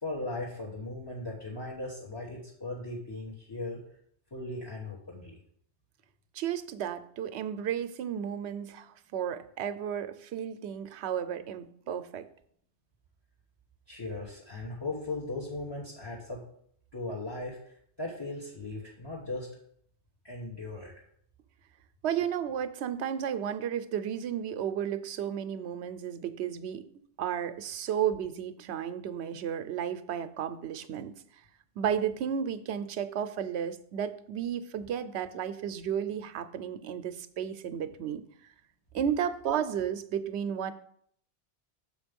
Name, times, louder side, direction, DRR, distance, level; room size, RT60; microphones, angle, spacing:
voice 1, 0.0-3.8 4.3-5.4 13.9-16.4 16.9-19.5 20.2-20.9, left 2 dB, 25° left, -2 dB, 1.3 m, -38 dB
voice 2, 6.3-12.3 22.0-26.8 27.2-31.1 31.8-38.2 38.9-40.7, right 9 dB, 80° right, 12 dB, 0.9 m, -33 dB
6.7 x 5.2 x 5.2 m, 0.64 s
omnidirectional pair, 1.1 m